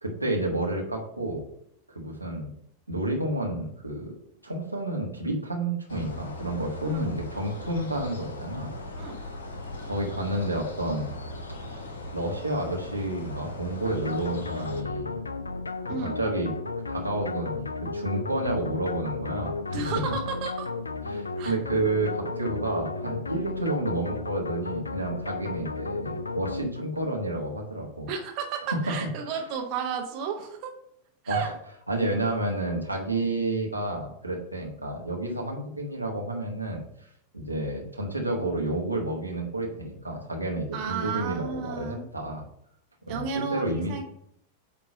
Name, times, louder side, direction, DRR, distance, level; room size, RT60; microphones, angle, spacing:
voice 1, 0.0-1.4 1.9-2.5 2.9-4.1 4.4-8.7 9.0-9.1 9.8-11.2 11.5-11.8 12.1-15.1 15.8-16.5 16.9-20.0 21.0-28.1 31.3-31.5 31.9-36.8 37.3-42.4 43.1-44.0, right 1 dB, 85° right, 0 dB, 1.3 m, -30 dB
sound 1, 5.9-14.8, left 1 dB, 65° left, 1.0 m, -39 dB
sound 2, 13.9-27.2, left 3 dB, 80° left, 0.4 m, -34 dB
voice 2, 15.9-16.2 19.7-20.7 21.4-21.5 28.1-30.7 31.2-31.5 40.7-42.0 43.1-44.0, right 6 dB, 40° right, 2 dB, 1.1 m, -32 dB
8.6 x 3.0 x 5.2 m, 0.70 s
figure-of-eight pair, 90°, 0 cm